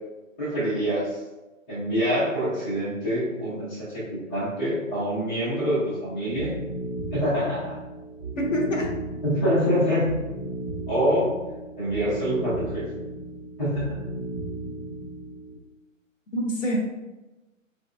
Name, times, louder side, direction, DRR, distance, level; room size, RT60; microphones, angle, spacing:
voice 1, 0.4-1.2 1.7-6.5 7.1-7.8 9.2-10.1 10.9-11.4 11.8-12.8 13.6-14.0, equal, 5° left, -15 dB, 0.6 m, -25 dB
sound 1, 6.3-15.5, right 2 dB, 10° right, 1.2 m, -35 dB
voice 2, 8.4-8.9 16.3-17.0, equal, 70° left, 1 dB, 0.8 m, -25 dB
4.0 x 2.6 x 2.2 m, 1.1 s
figure-of-eight pair, 135°, 40 cm